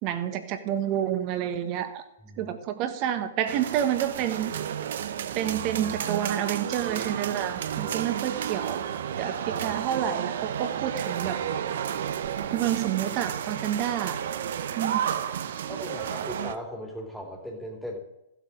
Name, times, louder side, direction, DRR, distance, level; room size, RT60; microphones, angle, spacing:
voice 1, 0.0-2.0 2.4-4.5 5.3-8.8 9.2-11.4 12.5-14.2 14.8-15.0, right 10 dB, 35° right, 1.6 m, -29 dB
voice 2, 2.2-2.5 7.8-8.1 15.7-18.0, equal, ahead, 2.5 m, -38 dB
sound 1, 3.5-16.6, right 9 dB, 55° right, 0.9 m, -32 dB
15.0 x 8.2 x 6.5 m
figure-of-eight pair, 120°, 0 cm